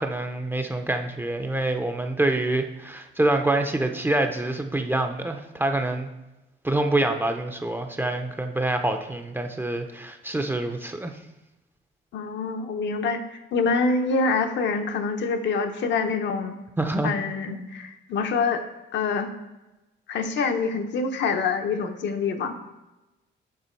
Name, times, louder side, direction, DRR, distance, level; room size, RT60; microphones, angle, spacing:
voice 1, 0.0-6.1 6.6-11.1 16.8-17.1 17.5-17.7, right 2 dB, 10° right, 5 dB, 0.5 m, -26 dB
voice 2, 12.1-13.2 13.5-16.6 17.0-18.6 18.9-19.3 20.1-22.6, left 4 dB, 65° left, 6 dB, 0.7 m, -25 dB
6.8 x 5.8 x 4.5 m, 1.0 s
cardioid pair, 145°, 20 cm